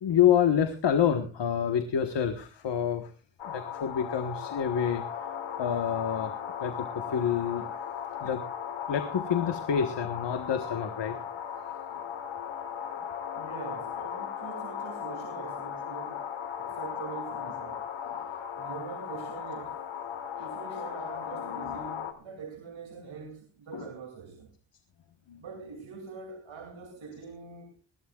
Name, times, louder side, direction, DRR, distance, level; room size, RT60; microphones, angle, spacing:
voice 1, 0.0-3.1 3.4-5.0 5.6-6.3 6.6-7.6 8.2-8.4 8.9-11.2 21.6-21.8 23.7-23.9 25.3-25.4, left 8 dB, 65° left, 1.4 m, -27 dB
sound 1, 3.4-22.1, left 8 dB, 85° left, 1.8 m, -37 dB
voice 2, 13.4-16.3 16.6-17.9 18.6-19.8 20.4-24.5 25.4-27.8, right 5 dB, 80° right, 2.7 m, -43 dB
21.0 x 16.0 x 2.4 m
wide cardioid pair, 135°, 46 cm